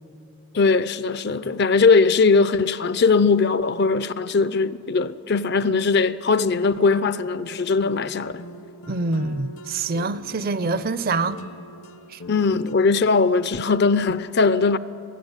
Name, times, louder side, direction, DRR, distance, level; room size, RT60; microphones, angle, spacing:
voice 1, 0.5-8.4 12.3-14.8, left 4 dB, 50° left, 0.5 m, -20 dB
sound 1, 7.8-12.7, equal, 70° left, 1.0 m, -41 dB
voice 2, 8.9-11.4 12.1-12.2, right 3 dB, 40° right, 0.5 m, -25 dB
26.5 x 16.5 x 8.9 m
head